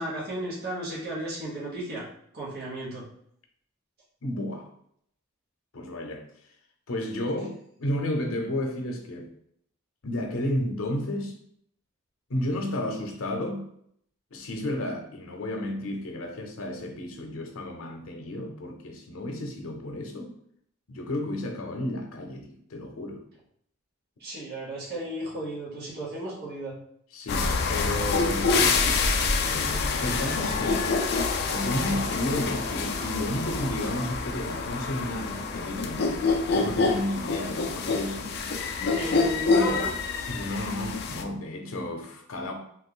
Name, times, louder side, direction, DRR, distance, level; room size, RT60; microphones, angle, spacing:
voice 1, 0.0-2.0 2.3-3.0 24.2-26.7 38.9-39.9, right 1 dB, 50° right, 1.0 m, -34 dB
voice 2, 4.2-4.7 5.7-6.2 6.9-9.3 10.0-11.4 12.3-13.7 14.3-20.3 20.9-23.2 27.1-30.9 31.5-38.3 40.3-42.5, left 1 dB, 80° left, 0.7 m, -32 dB
sound 1, 27.3-41.2, left 4 dB, 50° left, 0.3 m, -27 dB
2.9 x 2.4 x 3.7 m
head